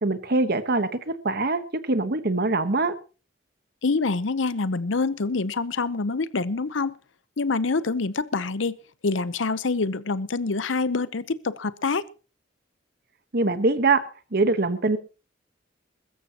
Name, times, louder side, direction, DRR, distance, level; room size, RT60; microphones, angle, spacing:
voice 1, 0.0-2.9 13.3-14.0 14.3-15.0, right 3 dB, 55° right, 1.2 m, -23 dB
voice 2, 3.8-7.0 7.4-8.8 9.0-12.1, left 3 dB, 85° left, 0.8 m, -26 dB
22.0 x 13.5 x 2.9 m
head